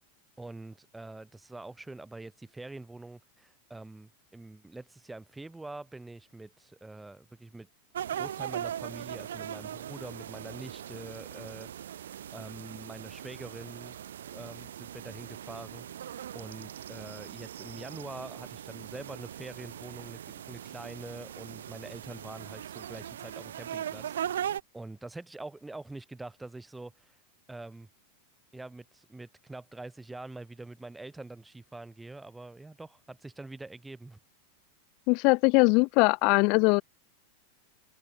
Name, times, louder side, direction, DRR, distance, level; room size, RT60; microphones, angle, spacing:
voice 1, 0.4-7.7 8.1-14.0 14.3-27.2 27.5-27.9 28.5-34.2, right 2 dB, 10° right, 4.9 m, -45 dB
sound 1, 7.9-24.6, right 10 dB, 75° right, 3.4 m, -40 dB
voice 2, 35.1-36.8, left 31 dB, 50° left, 0.4 m, -21 dB
hypercardioid pair, 100°, 0 cm